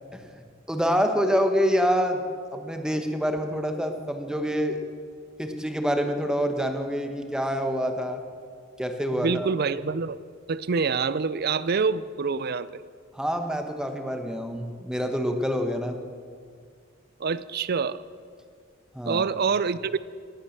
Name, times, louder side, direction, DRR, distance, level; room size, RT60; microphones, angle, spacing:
voice 1, 0.1-0.4 0.7-2.2 2.5-4.8 5.4-8.2 8.8-9.5 13.1-16.0 18.9-19.2, equal, 5° right, 5 dB, 1.2 m, -26 dB
voice 2, 9.1-10.2 10.5-12.8 17.2-18.0 19.1-20.0, right 5 dB, 55° right, 17 dB, 0.5 m, -26 dB
18.5 x 8.9 x 6.7 m, 2.1 s
head